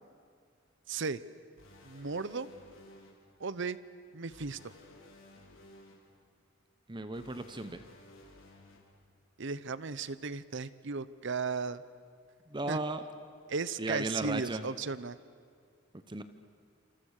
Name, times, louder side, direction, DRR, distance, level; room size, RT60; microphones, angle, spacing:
voice 1, 0.9-1.2 1.8-2.5 3.4-3.8 4.1-4.7 9.4-11.8 12.7-12.8 13.5-15.2, right 4 dB, 60° right, 16 dB, 0.8 m, -35 dB
sound 1, 1.6-3.1 4.3-5.9 7.1-8.8, left 2 dB, 80° left, 4.6 m, -56 dB
voice 2, 6.9-7.8 12.5-13.0 13.8-14.7 16.1-16.2, right 2 dB, 25° right, 10 dB, 0.9 m, -35 dB
28.0 x 27.0 x 6.6 m, 2.2 s
head